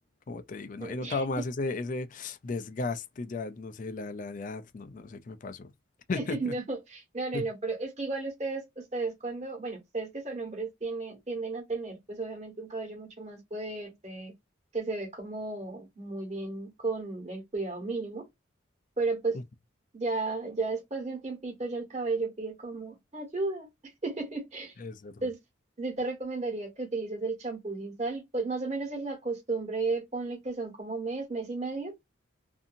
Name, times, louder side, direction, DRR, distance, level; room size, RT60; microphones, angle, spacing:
voice 1, 0.3-5.7 6.1-6.5 7.3-7.5 24.8-25.1, left 3 dB, 40° left, 0.4 m, -35 dB
voice 2, 0.8-1.2 6.1-14.3 14.7-18.3 19.0-19.4 19.9-23.7 24.0-24.7 25.2-25.4 25.8-31.9, right 3 dB, 35° right, 1.3 m, -34 dB
2.7 x 2.7 x 2.5 m
head